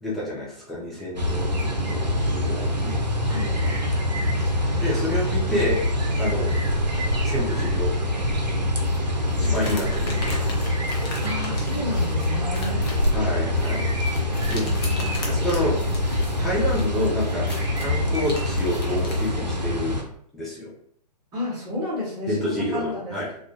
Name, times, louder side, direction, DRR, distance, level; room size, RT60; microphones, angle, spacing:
voice 1, 0.0-2.9 4.8-5.8 6.2-6.5 7.2-7.9 9.4-10.3 13.1-13.8 14.5-14.7 15.3-15.7 16.4-17.5 17.8-20.0 20.3-20.7 22.3-23.3, left 1 dB, ahead, -7 dB, 0.3 m, -28 dB
sound 1, 1.2-20.0, left 1 dB, 85° right, 0.6 m, -24 dB
sound 2, 1.5-2.3 3.3-4.5 4.8-5.1 5.7-8.6 9.8-12.0 13.6-16.0 17.0-19.0, right 2 dB, 40° right, 0.7 m, -38 dB
voice 2, 3.3-3.7 11.2-12.9 21.3-22.5 22.7-23.2, left 1 dB, 15° right, -6 dB, 0.9 m, -31 dB
sound 3, 8.8-19.3, left 3 dB, 35° left, 0.7 m, -38 dB
2.3 x 2.3 x 2.7 m, 0.64 s
figure-of-eight pair, 125°, 21 cm